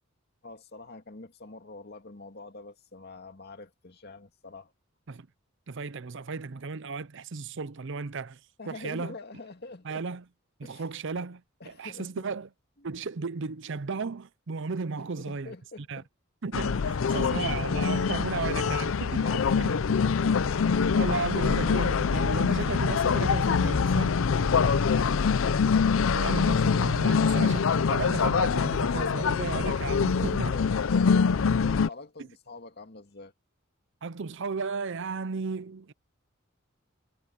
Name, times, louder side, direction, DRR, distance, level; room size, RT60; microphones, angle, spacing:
voice 1, 0.4-4.7 8.6-10.0 10.6-10.8 11.6-12.3 12.8-12.9 15.0-16.1 19.2-21.0 24.4-25.3 30.0-33.3, left 3 dB, 55° left, 2.2 m, -45 dB
voice 2, 5.7-8.4 8.7-9.1 9.8-10.2 10.6-12.5 12.8-15.5 15.9-16.0 16.4-19.7 20.4-20.5 20.9-24.6 26.1-30.5 34.0-35.9, right 4 dB, 65° right, 0.6 m, -35 dB
sound 1, 16.5-31.9, left 5 dB, 75° left, 0.5 m, -24 dB
head